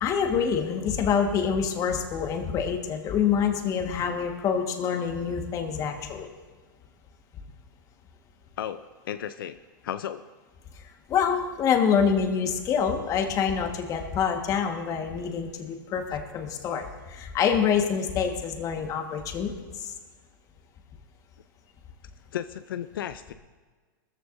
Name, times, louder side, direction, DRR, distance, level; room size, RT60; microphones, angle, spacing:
voice 1, 0.0-6.3 10.7-19.9, left 7 dB, 30° left, 4 dB, 1.5 m, -26 dB
voice 2, 8.6-9.6 9.8-10.3 22.3-23.3, left 10 dB, 80° left, 11 dB, 0.5 m, -34 dB
18.5 x 14.5 x 2.6 m, 1.5 s
hypercardioid pair, 135°, 11 cm